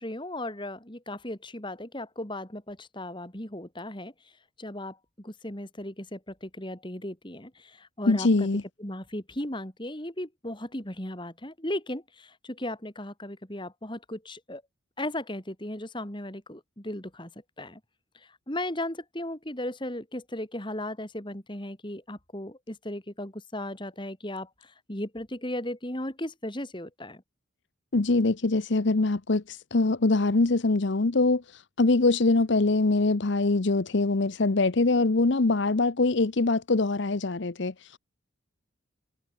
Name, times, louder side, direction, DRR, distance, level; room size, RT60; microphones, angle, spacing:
voice 1, 0.0-4.1 4.6-8.5 8.8-14.6 15.0-17.3 17.6-17.8 18.1-27.2, left 1 dB, 25° left, 2.9 m, -36 dB
voice 2, 8.1-8.6 27.9-38.0, left 3 dB, 55° left, 0.8 m, -23 dB
head